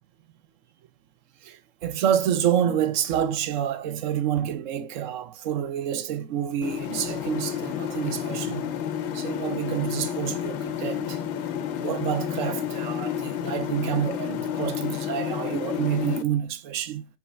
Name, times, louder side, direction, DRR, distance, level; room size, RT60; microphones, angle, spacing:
voice 1, 1.4-8.7 9.1-11.2 11.8-17.1, right 9 dB, 45° right, 0.4 m, -28 dB
sound 1, 6.6-16.2, left 9 dB, 40° left, 0.4 m, -30 dB
3.2 x 2.1 x 2.4 m
figure-of-eight pair, 90°, 33 cm